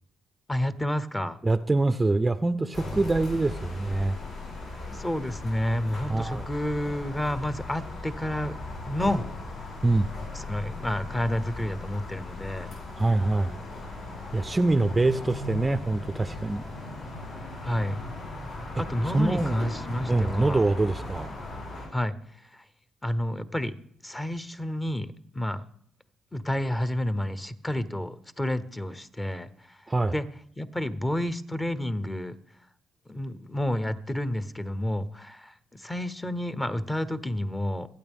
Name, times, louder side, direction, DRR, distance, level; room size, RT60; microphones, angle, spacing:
voice 1, 0.5-1.4 4.9-8.6 8.9-9.2 10.3-12.7 17.6-18.0 18.8-20.6 21.9-22.1 22.5-22.6 23.0-23.7 24.0-25.6 26.3-29.8 30.1-30.3 30.6-32.3 33.1-37.9, left 1 dB, 15° left, 14 dB, 0.9 m, -30 dB
voice 2, 1.4-4.2 6.1-6.5 9.8-10.1 13.0-13.6 14.3-16.6 19.1-19.6 20.1-21.3 29.9-30.1, right 2 dB, 20° right, 12 dB, 0.6 m, -24 dB
sound 1, 2.7-21.9, left 2 dB, 70° left, 8.0 m, -38 dB
26.0 x 9.0 x 3.6 m, 0.65 s
cardioid pair, 90°, 0 cm